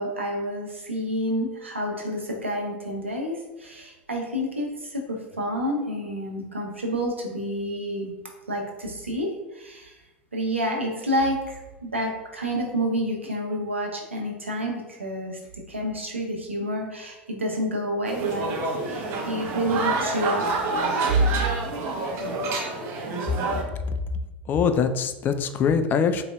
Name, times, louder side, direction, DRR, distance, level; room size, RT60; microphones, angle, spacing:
voice 1, 0.0-8.1 8.5-9.3 9.5-9.9 10.3-15.3 15.7-18.6 18.9-20.5, equal, 85° right, -1 dB, 0.8 m, -29 dB
sound 1, 18.1-23.6, right 3 dB, 40° right, 0.8 m, -28 dB
voice 2, 24.5-26.2, left 6 dB, 30° left, 8 dB, 0.4 m, -23 dB
4.0 x 3.8 x 2.3 m, 1.1 s
figure-of-eight pair, 80°, 6 cm